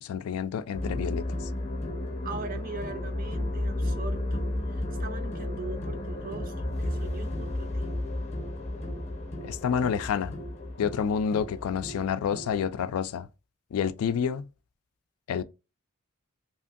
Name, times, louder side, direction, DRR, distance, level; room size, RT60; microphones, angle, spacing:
voice 1, 0.0-1.4 9.4-10.4 10.8-13.3 13.7-14.5 15.3-15.4, left 7 dB, 90° left, 0.3 m, -29 dB
sound 1, 0.7-12.6, left 1 dB, 30° left, 0.6 m, -33 dB
voice 2, 2.2-7.9, right 4 dB, 40° right, 0.4 m, -41 dB
2.9 x 2.5 x 2.4 m
head